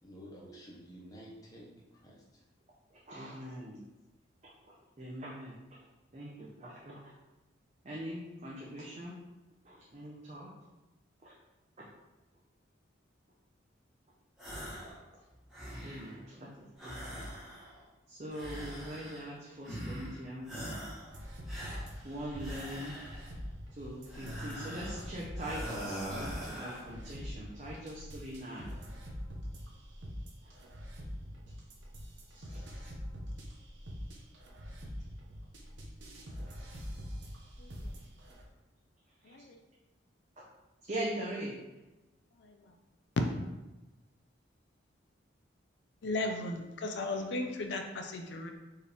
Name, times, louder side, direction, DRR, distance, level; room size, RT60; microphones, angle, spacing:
voice 1, 0.0-2.4, equal, 20° left, -5 dB, 0.7 m, -51 dB
voice 2, 2.9-3.8 4.4-5.6 6.1-7.0 7.8-9.2 9.6-10.5 11.2-11.3 15.8-16.5 16.8-17.2 18.1-20.7 22.0-23.0 23.8-28.7 32.3-32.9 40.9-41.6, right 1 dB, 35° right, -5 dB, 0.6 m, -42 dB
sound 1, 14.4-15.0 15.3-16.2 16.8-17.8 18.3-19.3 19.6-20.2 20.4-21.1 21.5-23.3 24.1-25.0 25.4-26.9, equal, ahead, 1.1 m, -42 dB
sound 2, 21.1-38.4, equal, 70° right, 0.8 m, -44 dB
voice 3, 37.6-37.9 39.2-39.6 42.4-42.7 46.0-48.5, left 2 dB, 60° left, 4 dB, 0.4 m, -36 dB
4.5 x 3.1 x 3.4 m, 1.1 s
head